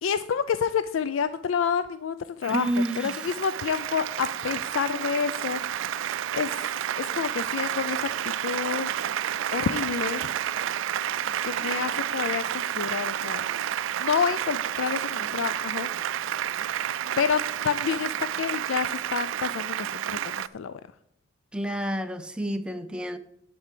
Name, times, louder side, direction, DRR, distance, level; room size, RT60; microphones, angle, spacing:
voice 1, 0.0-2.7 3.0-5.6 6.3-6.7 7.0-8.9 9.5-10.3 11.4-13.4 14.0-15.9 17.2-20.8, left 6 dB, 85° left, 13 dB, 0.4 m, -29 dB
Applause, 2.4-20.5, right 10 dB, 80° right, 0.3 m, -30 dB
voice 2, 2.5-3.2 21.5-23.2, right 1 dB, 5° right, 7 dB, 0.6 m, -29 dB
10.5 x 4.6 x 7.6 m, 0.75 s
head